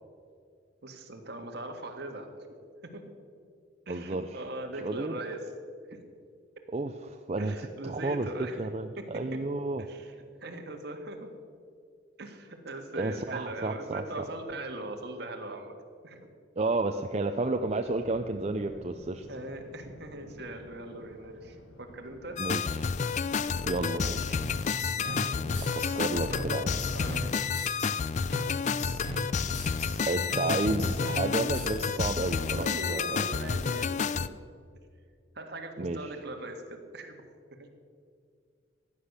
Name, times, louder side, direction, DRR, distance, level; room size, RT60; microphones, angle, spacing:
voice 1, 0.8-2.5 2.8-3.1 3.9-5.5 5.9-6.0 7.4-8.6 9.0-9.4 9.8-10.1 10.4-11.3 12.2-15.8 16.0-16.3 19.3-22.4 25.0-27.4 30.6-30.7 32.3-34.4 35.4-37.2 37.5-37.7, right 2 dB, 60° right, 4 dB, 1.7 m, -41 dB
voice 2, 3.9-4.4 4.8-5.2 6.7-7.6 7.8-9.8 13.0-14.0 16.6-19.3 22.4-22.9 23.6-24.5 26.0-26.8 30.1-33.2 35.8-36.2, right 2 dB, 35° right, 6 dB, 0.5 m, -31 dB
Thunder, 17.2-34.6, left 1 dB, 90° left, 1.9 m, -53 dB
sound 1, 22.4-34.3, left 6 dB, 40° left, 0.4 m, -30 dB
sound 2, 24.3-26.0 26.3-28.0 28.3-30.0 30.3-32.0, equal, 65° left, 4.5 m, -39 dB
15.5 x 9.8 x 6.7 m, 2.2 s
head